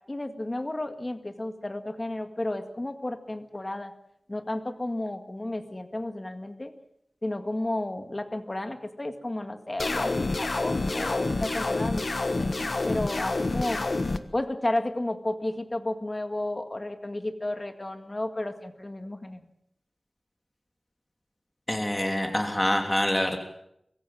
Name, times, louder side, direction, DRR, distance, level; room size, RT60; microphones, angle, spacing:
voice 1, 0.1-3.9 4.3-6.7 7.2-13.9 14.3-19.4, left 1 dB, 30° left, 7 dB, 2.0 m, -32 dB
sound 1, 9.8-14.2, left 2 dB, 60° left, 1.3 m, -28 dB
voice 2, 21.7-23.4, left 1 dB, 15° left, 3 dB, 3.2 m, -26 dB
24.5 x 15.0 x 7.6 m, 0.77 s
wide cardioid pair, 80°, 0 cm